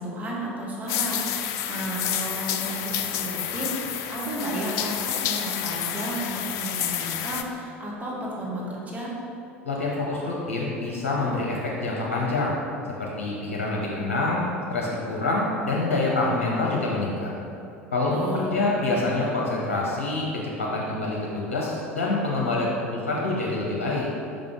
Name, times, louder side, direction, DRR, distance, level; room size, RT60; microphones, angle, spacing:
voice 1, 0.0-9.1 18.1-18.5, right 1 dB, 20° right, -4 dB, 1.3 m, -33 dB
sound 1, 0.9-7.4, left 10 dB, 50° left, 0.4 m, -29 dB
voice 2, 9.6-12.5 13.0-14.4 14.7-17.3 17.9-20.2 20.6-24.1, left 2 dB, 65° left, -4 dB, 0.8 m, -26 dB
5.3 x 5.2 x 3.6 m, 2.8 s
figure-of-eight pair, 70°, 7 cm